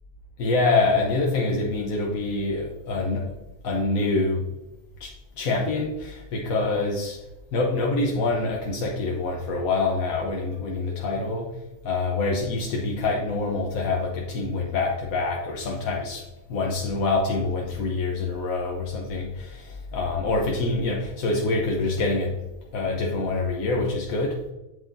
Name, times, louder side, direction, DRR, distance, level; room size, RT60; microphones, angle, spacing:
voice 1, 0.4-3.3 3.6-4.4 5.0-7.2 7.5-11.5 11.8-22.3 22.7-24.4, left 3 dB, 80° left, -1 dB, 1.4 m, -26 dB
8.2 x 7.8 x 2.6 m, 1.0 s
omnidirectional pair, 1.4 m